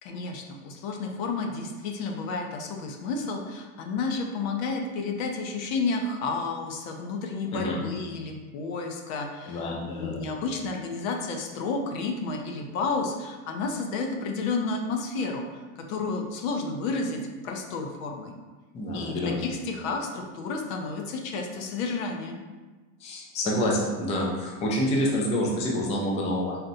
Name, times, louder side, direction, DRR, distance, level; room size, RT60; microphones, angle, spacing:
voice 1, 0.0-15.5 15.8-18.3 18.9-22.4, left 3 dB, 70° left, 3 dB, 0.8 m, -31 dB
voice 2, 9.5-10.3 18.7-19.4 23.0-26.6, left 1 dB, 15° left, -2 dB, 0.4 m, -27 dB
4.2 x 2.2 x 3.9 m, 1.3 s
supercardioid pair, 135°, 42 cm